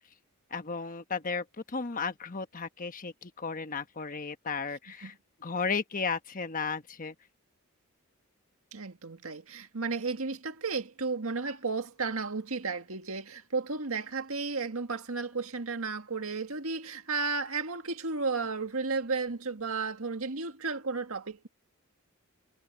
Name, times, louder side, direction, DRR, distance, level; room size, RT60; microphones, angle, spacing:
voice 1, 0.5-5.1 5.4-7.1, left 5 dB, 40° left, 1.2 m, -34 dB
voice 2, 8.7-21.5, right 4 dB, 75° right, 1.9 m, -33 dB
head